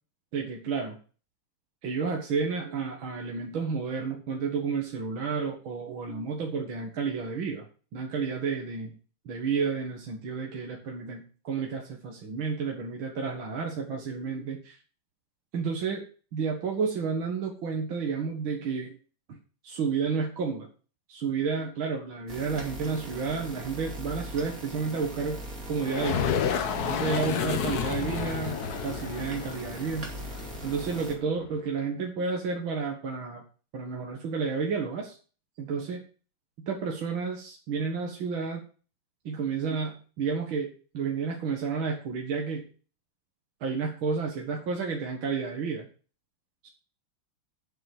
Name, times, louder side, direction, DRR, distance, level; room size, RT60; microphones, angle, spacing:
voice 1, 0.3-1.0 1.8-7.7 7.9-9.0 9.3-14.8 15.5-16.1 16.3-19.0 19.3-19.4 19.6-20.7 21.1-25.4 25.7-26.3 26.8-30.1 30.6-33.4 33.7-35.2 35.6-36.0 36.6-38.6 39.2-42.7 43.6-45.9 46.6-46.7, right 5 dB, 80° right, 0 dB, 2.5 m, -31 dB
sound 1, 22.3-31.2, right 1 dB, 45° right, 3.0 m, -40 dB
sound 2, 25.8-31.5, left 7 dB, 55° left, 1.4 m, -31 dB
8.2 x 7.7 x 7.9 m, 0.37 s
omnidirectional pair, 2.2 m